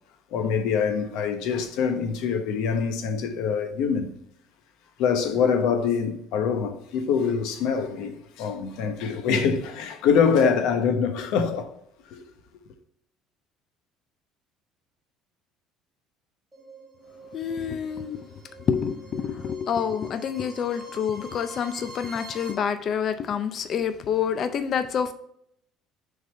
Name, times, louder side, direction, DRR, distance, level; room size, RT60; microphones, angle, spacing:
voice 1, 0.3-4.1 5.0-11.7 12.1-12.2, left 6 dB, 65° left, 1.0 m, -24 dB
sound 1, 16.5-22.5, right 1 dB, 10° right, 1.3 m, -45 dB
voice 2, 17.3-18.2 18.6-25.1, left 7 dB, 35° left, 0.4 m, -27 dB
6.2 x 4.0 x 4.4 m
cardioid pair, 170°, 0 cm